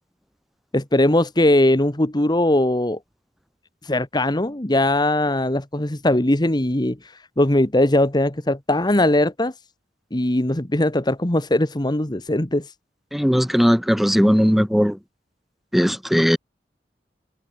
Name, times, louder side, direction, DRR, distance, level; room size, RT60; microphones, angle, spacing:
voice 1, 0.7-3.0 3.8-9.5 10.1-12.7, left 1 dB, 25° left, 1.4 m, -20 dB
voice 2, 13.1-15.0 15.7-16.4, equal, ahead, 1.4 m, -18 dB
head